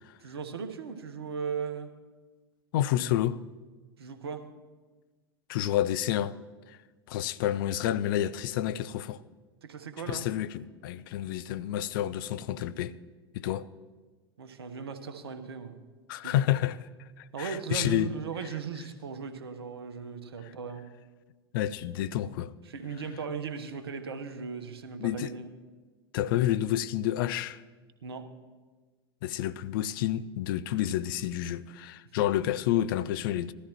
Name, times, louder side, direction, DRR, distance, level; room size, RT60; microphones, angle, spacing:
voice 1, 0.2-1.9 4.0-4.4 9.6-10.3 14.4-15.8 16.2-16.3 17.3-20.8 22.7-25.5 28.0-28.3, right 6 dB, 75° right, 1.1 m, -37 dB
voice 2, 2.7-3.4 5.5-6.4 6.7-6.8 7.1-9.2 10.1-12.9 13.3-13.7 16.1-16.9 17.2-18.1 21.5-22.5 25.0-25.3 26.1-27.6 29.2-33.5, left 12 dB, 60° left, 0.5 m, -29 dB
18.5 x 13.0 x 3.0 m
figure-of-eight pair, 85°, 13 cm